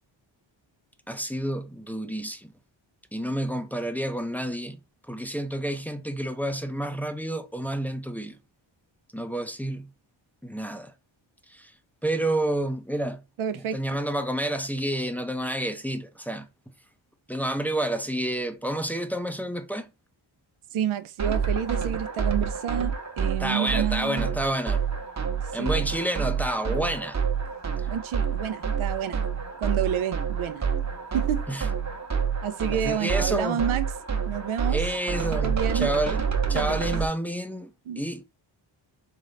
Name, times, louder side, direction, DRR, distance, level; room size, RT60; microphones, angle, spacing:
voice 1, 1.1-2.5 3.1-4.8 5.1-8.4 9.1-9.9 10.4-10.9 11.5-11.7 12.0-13.2 13.5-16.5 17.3-19.9 23.4-24.8 25.5-27.2 27.8-27.9 31.5-31.7 32.7-33.6 34.7-36.2 36.5-37.7 38.0-38.2, right 1 dB, 5° left, 0.5 m, -29 dB
voice 2, 13.4-13.8 20.7-24.3 25.5-25.8 27.9-29.2 29.6-30.7 31.1-31.4 32.4-33.9 34.3-34.8 35.4-35.9 37.9-38.0, right 9 dB, 80° right, 0.7 m, -29 dB
sound 1, 21.2-37.1, right 6 dB, 35° right, 1.0 m, -28 dB
3.9 x 3.8 x 3.2 m
cardioid pair, 85°, 48 cm